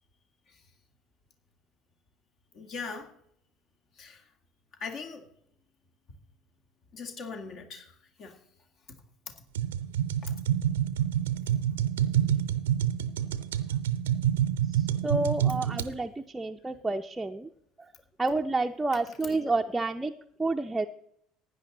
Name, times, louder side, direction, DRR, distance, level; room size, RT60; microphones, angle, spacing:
voice 1, 2.5-3.1 4.0-4.2 4.8-5.2 6.9-8.4 9.3-9.4 10.2-10.3 19.2-19.5, left 4 dB, 50° left, 5 dB, 2.1 m, -41 dB
sound 1, 9.6-15.9, right 10 dB, 75° right, 0.6 m, -27 dB
voice 2, 14.7-17.5 18.2-20.1 20.4-20.9, right 2 dB, 10° right, 3 dB, 0.6 m, -29 dB
15.5 x 10.0 x 4.0 m, 0.71 s
figure-of-eight pair, 60°, 0 cm